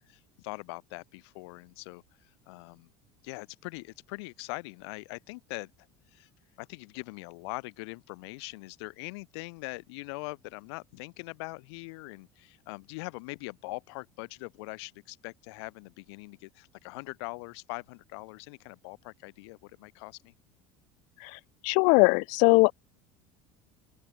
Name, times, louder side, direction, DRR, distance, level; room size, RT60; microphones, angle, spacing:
voice 1, 0.1-2.9 3.2-5.7 6.1-6.3 6.6-20.3, left 27 dB, 85° left, 3.9 m, -42 dB
voice 2, 21.6-22.7, left 36 dB, 70° left, 0.5 m, -20 dB
open air
cardioid pair, 140°, 13 cm